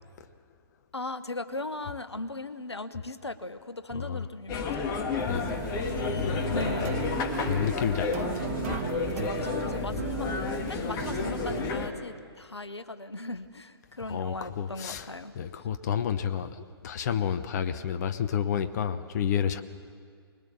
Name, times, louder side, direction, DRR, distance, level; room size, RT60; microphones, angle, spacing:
voice 1, 0.9-4.9 6.5-7.1 9.0-10.3 10.7-15.4, left 2 dB, 90° left, 11 dB, 1.2 m, -38 dB
sound 1, 4.5-11.9, left 4 dB, 25° left, 2.0 m, -31 dB
voice 2, 5.2-6.6 6.9-7.0 7.5-8.3 14.1-15.0 15.4-19.6, left 8 dB, 40° left, 9 dB, 1.0 m, -30 dB
sound 2, 5.2-11.7, right 12 dB, 35° right, 0.9 m, -37 dB
25.0 x 20.5 x 7.1 m, 2.1 s
figure-of-eight pair, 130°, 14 cm